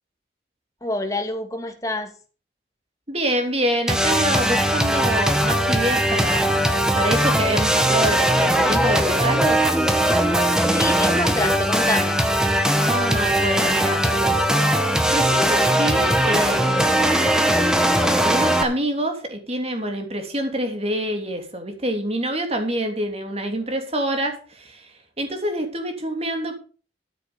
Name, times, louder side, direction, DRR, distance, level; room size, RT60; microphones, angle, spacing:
voice 1, 0.8-2.1 10.7-12.2, left 1 dB, 20° left, 4 dB, 2.3 m, -26 dB
voice 2, 3.1-6.5 6.9-9.6 12.8-14.6 15.1-17.6 18.1-26.6, right 1 dB, 35° right, 5 dB, 3.1 m, -26 dB
sound 1, 3.9-18.6, right 1 dB, 5° right, 1.5 m, -20 dB
13.5 x 8.2 x 5.2 m, 0.38 s
head